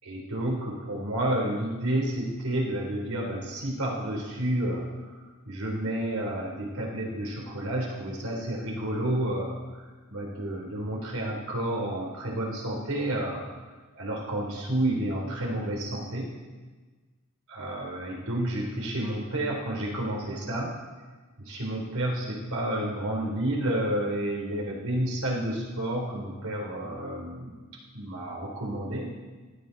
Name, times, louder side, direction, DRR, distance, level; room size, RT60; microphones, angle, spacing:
voice 1, 0.0-5.2 5.4-9.8 10.1-13.7 13.9-16.3 17.5-20.7 21.4-27.5 27.9-29.1, right 1 dB, 90° right, -1 dB, 3.7 m, -30 dB
15.5 x 11.0 x 4.1 m, 1.3 s
head